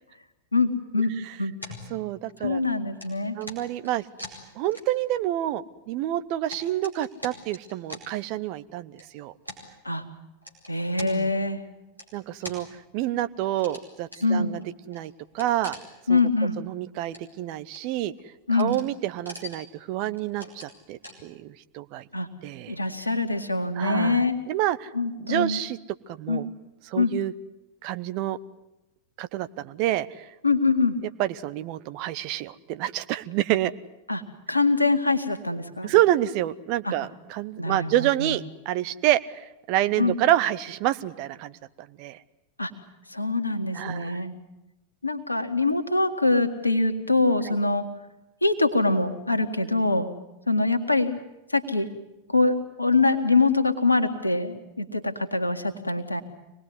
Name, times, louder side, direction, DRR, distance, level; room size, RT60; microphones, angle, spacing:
voice 1, 0.5-1.1 1.4-1.5 2.4-3.4 9.8-10.0 10.7-11.6 14.2-14.5 16.1-16.6 18.5-18.8 22.1-22.3 22.7-24.4 24.9-25.6 26.3-26.5 27.0-27.1 30.4-31.0 34.1-34.2 34.5-35.9 36.8-36.9 37.6-38.4 40.0-40.2 42.6-42.7 43.1-44.3 45.0-47.9 48.4-50.1 50.5-51.2 51.5-51.9 52.3-56.2, left 3 dB, 85° left, 8 dB, 1.9 m, -24 dB
sound 1, 1.6-2.6 3.0-5.2 5.5-5.6 6.1-8.0 8.9-9.0 9.4-9.6 10.4-11.1 12.0-12.6 13.5-13.8 14.1-14.3 14.6-14.7 14.9-16.2 16.5-16.6 16.9-17.4 17.7-18.2 18.5-18.9 19.1-19.7 20.1-20.8 21.0-21.2, left 1 dB, 90° right, 4.8 m, -42 dB
voice 2, 1.9-2.6 3.4-4.0 4.6-9.3 11.0-11.3 12.1-12.7 12.9-14.6 14.9-15.8 16.1-16.2 16.6-18.1 18.5-22.0 22.4-22.8 23.8-24.9 25.2-25.8 26.1-26.5 26.9-27.3 27.8-28.4 29.2-30.2 31.2-33.7 35.8-41.5 42.0-42.2 43.7-44.2 47.5-47.6, right 14 dB, 45° right, 13 dB, 0.9 m, -28 dB
25.0 x 20.0 x 9.6 m, 0.96 s
figure-of-eight pair, 90°, 0 cm